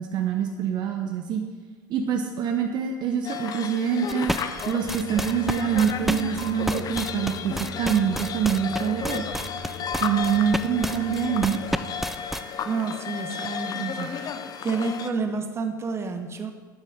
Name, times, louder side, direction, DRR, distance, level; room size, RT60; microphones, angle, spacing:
voice 1, 0.0-1.4 1.9-4.3 4.7-9.2 10.0-11.6 13.7-14.1, right 7 dB, 45° right, 4 dB, 0.8 m, -25 dB
sound 1, 3.2-15.1, left 7 dB, 35° left, 0.7 m, -34 dB
sound 2, 4.1-12.4, right 1 dB, ahead, 0.4 m, -30 dB
sound 3, 4.8-11.9, right 3 dB, 70° right, 1.4 m, -41 dB
voice 2, 12.6-13.8 14.2-14.3 14.6-16.5, right 4 dB, 25° right, 6 dB, 1.1 m, -29 dB
11.0 x 9.1 x 3.7 m, 1.4 s
figure-of-eight pair, 75°, 11 cm